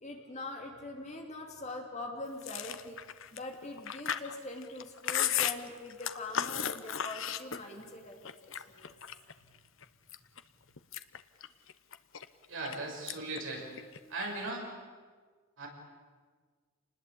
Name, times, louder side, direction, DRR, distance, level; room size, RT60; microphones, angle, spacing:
voice 1, 0.0-3.0 3.3-9.2, left 2 dB, 30° left, 2 dB, 3.0 m, -43 dB
Chewing mastication, 2.4-7.9 8.3-9.3 9.8-10.4 10.8-12.8 13.1-13.4 13.7-14.5, left 9 dB, 60° left, 0.9 m, -35 dB
voice 2, 12.5-13.7 14.1-14.7 15.6-15.7, right 2 dB, 60° right, 0 dB, 6.3 m, -38 dB
28.0 x 20.0 x 8.6 m, 1.5 s
head